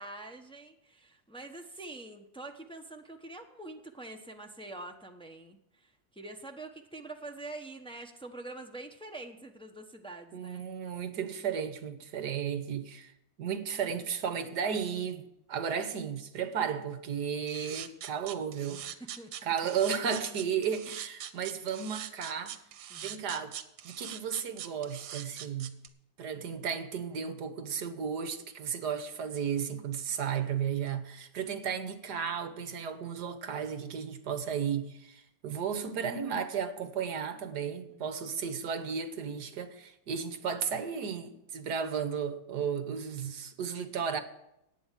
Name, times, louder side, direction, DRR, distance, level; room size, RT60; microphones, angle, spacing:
voice 1, 0.0-10.6 18.8-19.3 22.9-23.2 35.8-36.2 37.9-38.5, right 2 dB, 5° left, 0.6 m, -46 dB
voice 2, 10.3-13.1 13.4-18.8 19.4-22.6 23.0-23.6 23.8-25.8 26.2-44.2, right 7 dB, 65° right, 1.6 m, -34 dB
sound 1, 17.5-25.9, right 10 dB, 80° right, 1.5 m, -42 dB
11.0 x 8.9 x 7.4 m
omnidirectional pair, 2.0 m